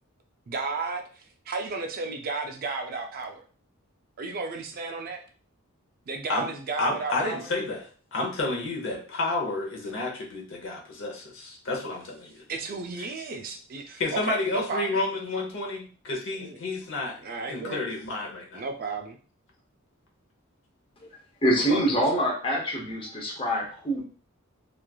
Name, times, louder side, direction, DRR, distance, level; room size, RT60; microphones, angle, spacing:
voice 1, 0.5-3.4 4.2-5.2 6.1-7.5 12.5-14.9 16.4-16.6 17.2-17.8 18.5-19.2, right 3 dB, 40° right, 4 dB, 0.3 m, -33 dB
voice 2, 6.8-7.8 8.1-12.4 14.0-17.2 17.5-18.6 21.7-21.8, left 2 dB, 60° left, -1 dB, 0.8 m, -30 dB
voice 3, 21.4-24.0, equal, 25° left, -2 dB, 0.7 m, -25 dB
3.0 x 2.4 x 2.2 m, 0.40 s
head